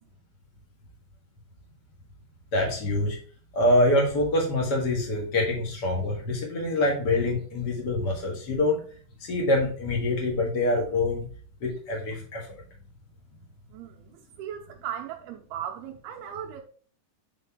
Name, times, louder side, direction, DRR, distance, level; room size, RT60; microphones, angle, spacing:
voice 1, 2.5-3.2 3.5-8.8 9.2-11.3 11.6-12.5, left 1 dB, 75° left, 0.9 m, -25 dB
voice 2, 13.7-16.6, right 9 dB, 85° right, 2.4 m, -37 dB
8.4 x 4.4 x 3.6 m
omnidirectional pair, 4.9 m